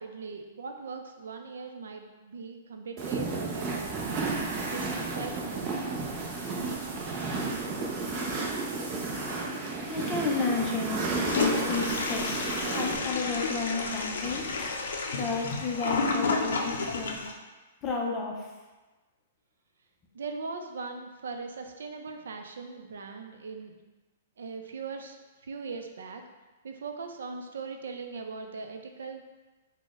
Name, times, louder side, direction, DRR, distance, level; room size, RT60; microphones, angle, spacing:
voice 1, 0.0-5.8 20.1-23.8 24.4-25.2 25.4-26.2 26.6-29.2, right 4 dB, 90° right, 5 dB, 0.4 m, -40 dB
sound 1, 3.0-13.0, right 3 dB, 25° right, 0.5 m, -32 dB
voice 2, 9.8-17.2 17.8-18.5, left 4 dB, 20° left, 0 dB, 0.5 m, -32 dB
Toilet flush, 11.3-17.3, left 4 dB, 80° left, 0.4 m, -31 dB
3.9 x 2.1 x 3.6 m, 1.2 s
hypercardioid pair, 160°, 0 cm